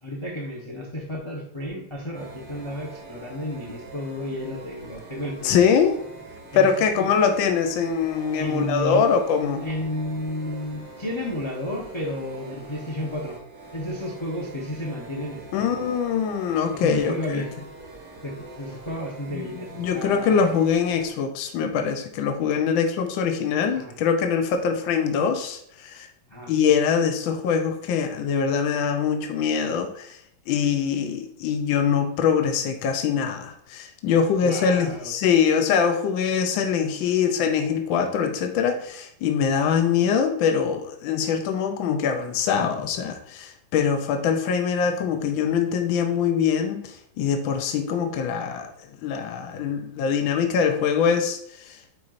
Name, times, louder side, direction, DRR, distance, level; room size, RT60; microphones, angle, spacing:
voice 1, 0.0-5.7 6.5-6.7 6.9-7.1 8.3-9.1 9.6-13.4 13.7-15.8 16.7-17.5 18.2-20.5 23.8-23.9 26.3-26.5 34.4-35.1, left 1 dB, 25° left, -3 dB, 0.7 m, -32 dB
sound 1, 2.1-21.1, right 2 dB, 45° right, 2.2 m, -44 dB
voice 2, 5.4-6.0 6.6-9.7 15.5-17.4 19.3-19.5 19.8-26.1 26.5-30.1 30.5-48.7 49.0-51.4 51.7-51.8, left 6 dB, 75° left, 6 dB, 1.4 m, -23 dB
8.5 x 4.5 x 2.5 m, 0.68 s
omnidirectional pair, 2.1 m